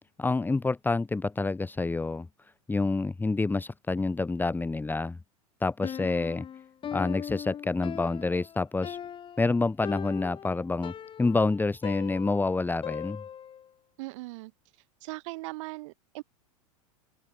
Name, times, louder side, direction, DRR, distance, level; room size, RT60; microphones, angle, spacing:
voice 1, 0.2-2.3 2.7-5.2 5.6-6.4 6.9-9.0 9.4-10.9 11.2-13.2, left 3 dB, 10° left, 2.2 m, -28 dB
Piano, 5.8-13.7, left 9 dB, 25° left, 2.9 m, -39 dB
voice 2, 14.0-14.5 15.0-16.2, right 22 dB, 55° right, 3.8 m, -39 dB
open air
figure-of-eight pair, 90°, 19 cm